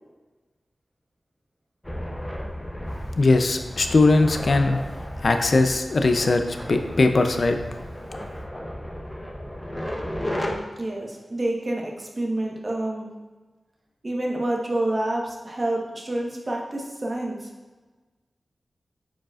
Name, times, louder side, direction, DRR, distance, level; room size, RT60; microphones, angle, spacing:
sound 1, 1.8-10.6, equal, 10° left, 0.7 m, -34 dB
voice 1, 3.2-4.8 5.2-7.6, left 3 dB, 60° left, 6 dB, 0.4 m, -20 dB
voice 2, 10.8-13.1 14.0-17.5, right 1 dB, 35° right, -1 dB, 1.1 m, -28 dB
9.0 x 5.0 x 2.4 m, 1.3 s
wide cardioid pair, 105°, 0 cm